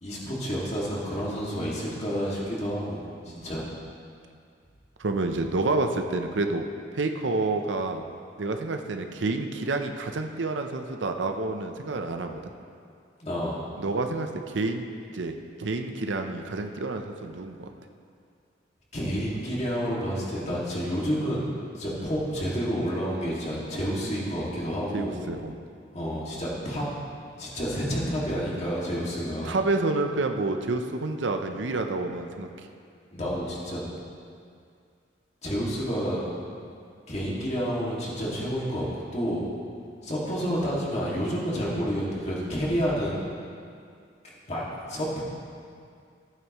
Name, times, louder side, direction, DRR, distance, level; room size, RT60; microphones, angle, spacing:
voice 1, 0.0-3.0 3.2-3.7 13.2-13.6 18.9-21.5 21.7-25.2 25.9-26.8 27.4-29.6 33.1-33.9 35.4-36.3 37.1-39.5 40.0-43.3 44.5-44.6 44.9-45.2, equal, 40° left, -5 dB, 2.2 m, -29 dB
voice 2, 5.0-6.6 6.9-8.0 8.4-12.5 13.8-14.8 15.1-17.7 24.9-25.6 29.4-32.7, right 3 dB, 80° right, 5 dB, 0.7 m, -29 dB
14.5 x 9.0 x 3.1 m, 2.3 s
head